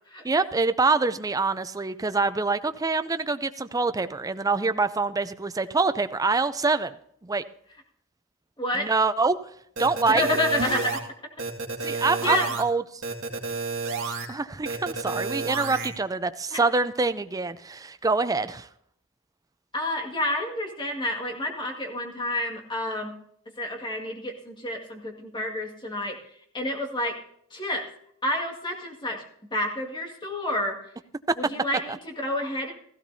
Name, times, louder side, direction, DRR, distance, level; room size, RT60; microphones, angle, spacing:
voice 1, 0.2-7.0 7.2-7.4 8.7-9.4 9.8-10.2 11.8-12.8 14.0-18.7, right 3 dB, 15° right, 11 dB, 0.5 m, -25 dB
voice 2, 8.6-8.9 10.1-11.0 11.8-12.5 16.5-16.6 19.7-23.2 23.6-26.2 26.5-27.2 27.5-27.9 28.2-29.2 29.5-30.8 31.4-32.7, left 1 dB, 20° left, 1 dB, 2.0 m, -29 dB
sound 1, 9.8-11.0 11.4-12.6 13.0-14.3 14.6-15.9, right 4 dB, 65° right, 1.9 m, -30 dB
16.0 x 15.0 x 2.7 m, 0.66 s
head